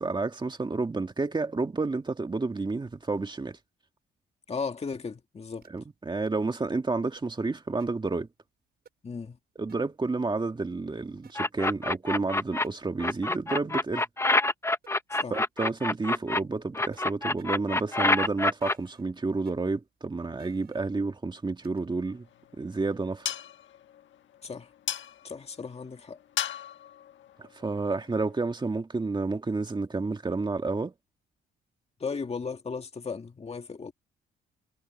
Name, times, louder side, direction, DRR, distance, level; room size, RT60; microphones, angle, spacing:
voice 1, 0.0-3.6 5.7-8.3 9.6-14.0 15.3-22.3 22.6-23.3 27.4-30.9, right 3 dB, 25° right, 2.1 m, -30 dB
voice 2, 4.5-5.7 9.0-9.4 15.1-15.4 24.4-24.7 25.2-26.2 32.0-33.9, left 5 dB, 30° left, 2.1 m, -36 dB
sound 1, 5.6-5.8 7.2-7.3 7.8-7.9 8.9-9.0 9.7-9.8 11.2-11.3 12.6-12.7 14.0-14.1 14.8-14.9 15.2-15.3 16.9-17.0 17.4-17.5 18.6-19.0 19.5-19.6 20.4-20.8 21.6-21.8, right 8 dB, 55° right, 7.1 m, -55 dB
sound 2, 11.4-12.6 13.0-16.4 16.7-18.7, left 2 dB, 15° left, 1.2 m, -26 dB
sound 3, 22.1-28.5, left 10 dB, 70° left, 1.4 m, -39 dB
cardioid pair, 90°, 20 cm